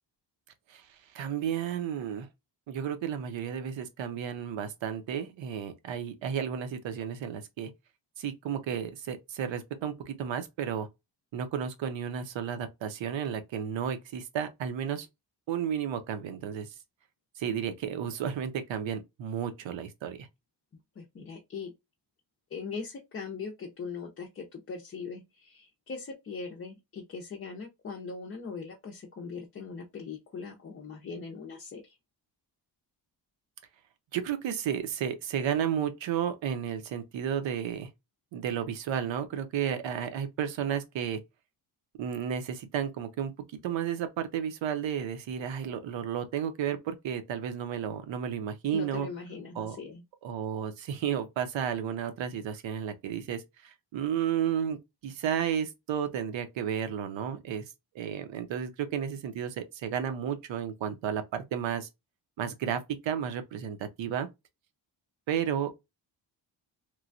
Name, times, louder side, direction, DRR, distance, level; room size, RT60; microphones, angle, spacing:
voice 1, 1.1-2.3 2.7-7.7 8.2-10.9 11.3-15.1 15.5-16.7 17.4-20.3 34.1-37.9 38.3-41.2 42.0-43.3 43.6-49.1 49.5-49.8 50.2-57.6 57.9-61.9 62.4-64.3 65.3-65.7, right 8 dB, 75° right, 0.7 m, -32 dB
voice 2, 21.0-21.7 22.5-32.0 48.7-50.0, left 5 dB, 30° left, 0.5 m, -40 dB
3.1 x 2.2 x 2.5 m
cardioid pair, 130°, 46 cm